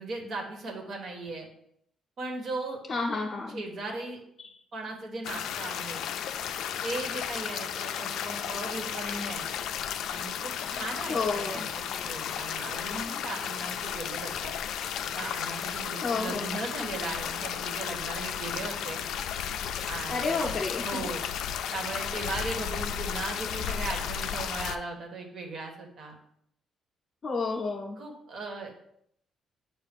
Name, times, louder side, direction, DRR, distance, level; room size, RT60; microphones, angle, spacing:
voice 1, 0.0-1.5 2.2-3.0 3.5-4.2 4.7-6.0 6.8-9.5 10.1-14.5 15.1-19.0 19.9-21.2 21.7-26.1 27.9-28.7, right 2 dB, 60° right, 2 dB, 1.4 m, -37 dB
voice 2, 2.9-3.6 11.1-11.7 16.0-16.6 20.1-21.1 27.2-28.0, left 4 dB, 35° left, -2 dB, 0.7 m, -30 dB
sound 1, 5.2-24.8, left 9 dB, 80° left, 0.4 m, -34 dB
7.4 x 2.5 x 5.2 m, 0.72 s
cardioid pair, 90°, 0 cm